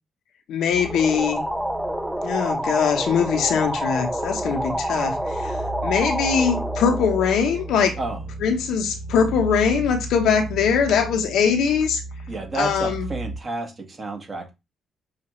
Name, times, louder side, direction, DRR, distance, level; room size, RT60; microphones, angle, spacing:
voice 1, 0.5-1.4 2.2-8.0 8.4-12.0 12.5-13.1, left 6 dB, 80° left, 0.8 m, -22 dB
sound 1, 0.7-13.4, right 2 dB, 65° right, 1.9 m, -36 dB
sound 2, 0.8-8.1, equal, 5° right, 0.5 m, -28 dB
voice 2, 12.3-14.5, right 2 dB, 35° right, 1.3 m, -30 dB
5.7 x 2.4 x 3.0 m
cardioid pair, 90°, 0 cm